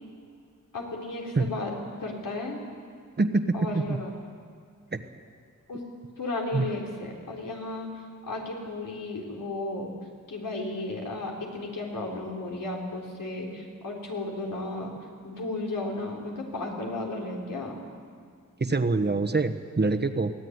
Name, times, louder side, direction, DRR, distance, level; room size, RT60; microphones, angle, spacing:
voice 1, 0.7-1.7 2.0-2.7 3.5-4.1 5.7-5.8 6.2-7.9 8.3-9.9 10.3-14.9 15.2-17.7, left 2 dB, 90° left, -1 dB, 4.4 m, -34 dB
voice 2, 18.6-20.3, right 3 dB, 30° right, 8 dB, 1.2 m, -25 dB
23.5 x 17.0 x 9.6 m, 2.2 s
wide cardioid pair, 115°, 32 cm